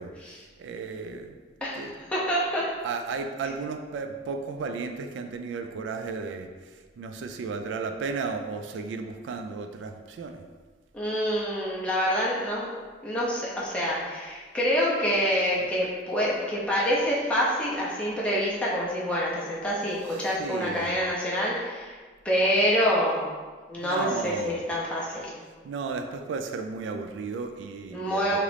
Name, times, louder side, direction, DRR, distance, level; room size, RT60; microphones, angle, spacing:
voice 1, 0.6-1.4 1.8-1.9 2.8-6.5 7.0-10.4 20.3-20.9 23.8-24.6 25.6-28.4, right 4 dB, 80° right, 7 dB, 0.3 m, -34 dB
voice 2, 1.6-2.6 10.9-12.7 13.0-22.0 22.2-23.3 23.7-25.3 27.9-28.4, equal, 5° left, -7 dB, 0.5 m, -26 dB
3.0 x 2.5 x 3.2 m, 1.4 s
head